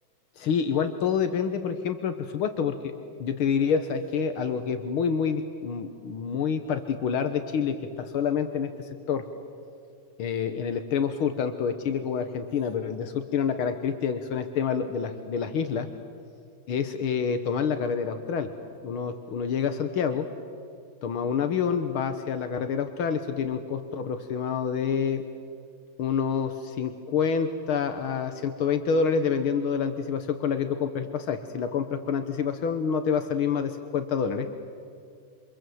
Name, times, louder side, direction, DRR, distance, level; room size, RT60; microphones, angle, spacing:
voice 1, 0.4-2.9 3.2-9.2 10.2-15.9 16.7-18.5 18.8-20.3 21.0-25.2 26.0-34.5, left 6 dB, 80° left, 8 dB, 2.0 m, -27 dB
28.5 x 26.5 x 7.9 m, 2.3 s
omnidirectional pair, 2.3 m